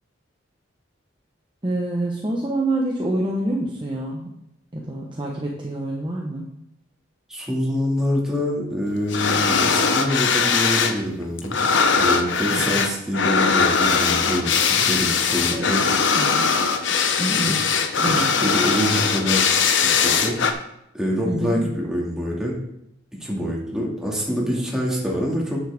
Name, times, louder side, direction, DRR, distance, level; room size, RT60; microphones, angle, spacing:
voice 1, 1.6-4.3 4.7-6.5 12.5-12.6 15.5-15.7 16.2-16.7 17.2-17.6 18.0-18.5 21.2-21.8, right 1 dB, 25° right, -2 dB, 1.0 m, -27 dB
voice 2, 7.3-11.6 11.9-15.8 17.4-17.5 18.1-19.6 19.9-20.4 20.9-22.6 23.2-25.6, equal, 5° right, -4 dB, 2.2 m, -26 dB
sound 1, 9.1-11.0 11.2-20.5, left 5 dB, 65° left, 0.8 m, -20 dB
9.7 x 7.5 x 3.6 m, 0.80 s
head